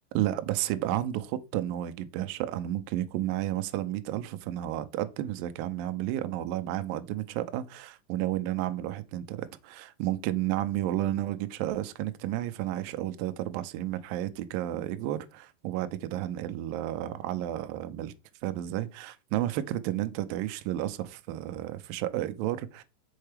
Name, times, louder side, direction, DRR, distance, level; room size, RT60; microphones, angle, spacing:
voice 1, 0.1-18.1 18.4-22.8, right 13 dB, 80° right, 2.1 m, -32 dB
6.5 x 4.4 x 3.4 m
omnidirectional pair, 4.6 m